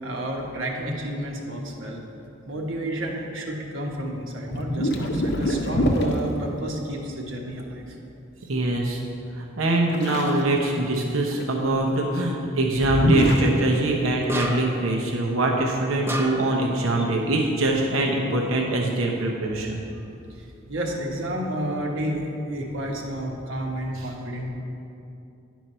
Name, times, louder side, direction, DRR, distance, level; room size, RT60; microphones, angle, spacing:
voice 1, 0.0-2.0 2.4-8.0 17.0-17.1 20.0-20.1 20.4-24.5, right 1 dB, 65° right, 0 dB, 1.2 m, -31 dB
sound 1, 3.9-4.1 4.5-6.1 9.9-10.4 10.8-11.4 12.7-13.5, equal, 55° left, 0.7 m, -24 dB
voice 2, 8.5-9.0 9.3-19.8 24.0-24.1, right 2 dB, 85° right, 0 dB, 0.8 m, -23 dB
sound 2, 14.3-14.9 16.1-16.6, left 1 dB, 10° right, 0.4 m, -29 dB
10.5 x 4.6 x 5.5 m, 2.7 s
head